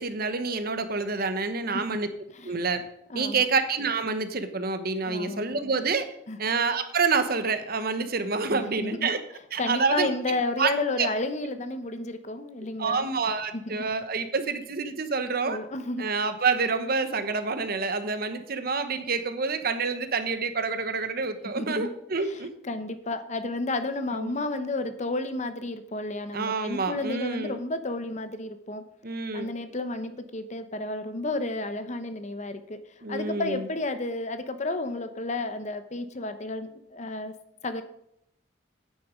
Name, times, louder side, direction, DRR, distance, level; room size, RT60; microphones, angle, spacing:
voice 1, 0.0-2.1 2.4-2.8 3.1-6.1 6.4-9.2 9.5-10.1 10.6-10.7 11.0-11.1 12.8-15.6 16.0-22.5 24.1-24.4 26.3-27.6 29.0-29.5 33.0-33.7, right 4 dB, 50° right, 9 dB, 1.1 m, -28 dB
voice 2, 3.1-3.4 5.0-5.5 6.3-6.4 8.5-9.1 9.6-13.1 13.5-13.8 15.5-16.1 21.6-21.9 22.2-22.4 22.6-28.8 29.3-32.8 33.1-37.3 37.6-37.8, left 2 dB, 40° left, 10 dB, 0.9 m, -31 dB
9.4 x 9.3 x 5.1 m, 0.77 s
head